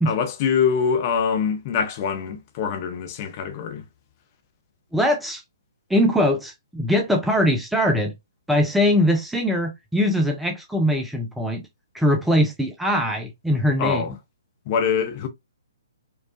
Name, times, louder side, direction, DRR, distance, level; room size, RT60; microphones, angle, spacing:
voice 1, 0.1-3.8 13.8-14.1 14.7-15.3, left 6 dB, 35° left, 0.8 m, -24 dB
voice 2, 4.9-5.4 5.9-8.1 8.5-11.6 11.9-14.0, equal, 5° right, 0.5 m, -21 dB
4.6 x 2.3 x 2.7 m
figure-of-eight pair, 125°, 2 cm